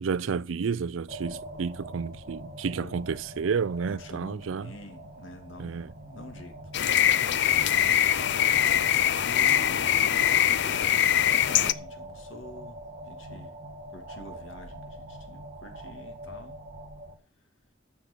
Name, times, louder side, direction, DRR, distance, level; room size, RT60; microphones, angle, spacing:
voice 1, 0.0-4.7 5.6-5.9, right 5 dB, 85° right, 0.4 m, -31 dB
sound 1, 1.1-17.1, right 1 dB, 40° right, 1.9 m, -44 dB
voice 2, 3.9-5.8 6.0-6.5 9.2-9.9 10.6-12.8 13.1-13.6 13.9-14.8 15.3-16.6, left 1 dB, 85° left, 2.5 m, -46 dB
sound 2, 6.7-11.7, left 10 dB, 65° left, 0.5 m, -23 dB
10.5 x 7.4 x 7.0 m
head